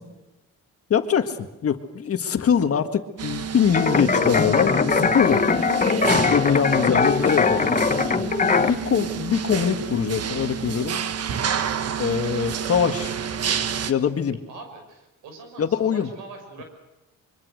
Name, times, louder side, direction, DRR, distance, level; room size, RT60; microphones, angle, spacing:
voice 1, 0.9-1.4 1.6-5.4 6.3-7.7 8.6-11.0 12.0-13.1 13.9-14.4 15.6-16.1, left 7 dB, 50° left, 8 dB, 1.7 m, -23 dB
sound 1, 3.2-13.9, right 7 dB, 55° right, 1.3 m, -29 dB
sound 2, 3.7-8.7, left 5 dB, 25° left, 1.2 m, -21 dB
voice 2, 6.7-8.2 14.5-16.6, right 3 dB, 90° right, 5 dB, 6.0 m, -43 dB
25.0 x 24.0 x 6.5 m, 1.0 s
cardioid pair, 90°, 30 cm